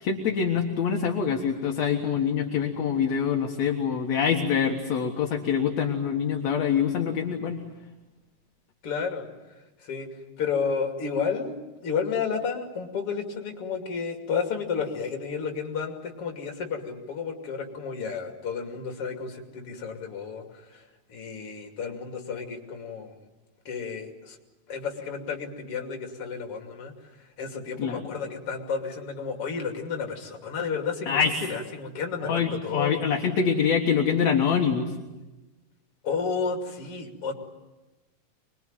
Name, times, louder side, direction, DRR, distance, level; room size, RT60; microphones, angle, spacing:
voice 1, 0.0-7.7 27.8-28.1 31.1-31.4 32.2-34.9, left 7 dB, 60° left, 2 dB, 2.6 m, -25 dB
voice 2, 8.8-9.3 9.8-10.1 10.4-11.6 11.8-20.8 21.1-23.1 23.6-24.4 24.7-26.9 27.4-31.2 31.5-33.1 36.0-37.3, left 5 dB, 45° left, 3 dB, 3.4 m, -31 dB
25.5 x 22.0 x 9.0 m, 1.1 s
omnidirectional pair, 3.8 m